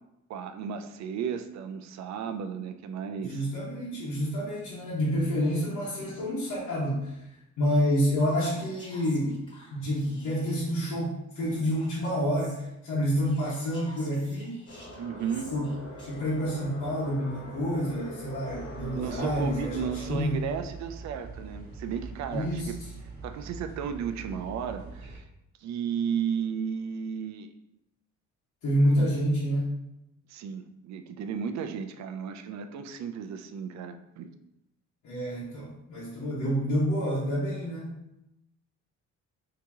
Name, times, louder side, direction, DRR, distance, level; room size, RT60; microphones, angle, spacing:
voice 1, 0.3-3.5 15.0-15.5 18.9-22.8 23.2-25.2 25.6-27.5 29.0-29.1 30.3-34.3, right 7 dB, 65° right, 8 dB, 0.4 m, -34 dB
voice 2, 3.2-7.2 7.6-9.4 9.7-14.7 15.5-15.7 16.1-20.4 22.3-22.7 28.6-29.7 35.0-37.9, equal, 70° left, -8 dB, 1.1 m, -28 dB
Whispering, 8.2-10.7 11.4-12.6 13.2-16.5, left 2 dB, 15° left, 1.3 m, -52 dB
sound 1, 14.7-20.3, left 2 dB, 50° left, 1.0 m, -43 dB
sound 2, 18.5-25.2, right 4 dB, 30° right, 1.4 m, -43 dB
2.9 x 2.8 x 3.5 m, 0.88 s
cardioid pair, 90°, 30 cm